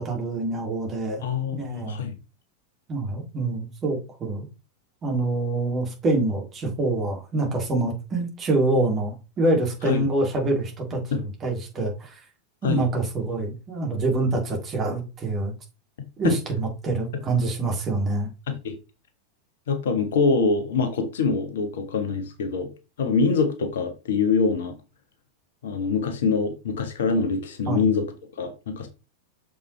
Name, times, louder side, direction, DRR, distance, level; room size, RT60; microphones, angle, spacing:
voice 1, 0.0-1.2 1.5-2.0 2.9-4.5 5.0-12.2 12.6-15.5 16.2-18.3 27.7-27.9, right 2 dB, 25° right, 2.6 m, -26 dB
voice 2, 1.2-2.1 9.9-10.0 11.1-11.2 12.6-12.8 16.2-16.3 18.5-18.7 19.7-22.7 23.0-24.7 25.6-28.0 28.4-28.9, left 4 dB, 60° left, 1.3 m, -24 dB
6.8 x 5.3 x 3.3 m
figure-of-eight pair, 90°, 0 cm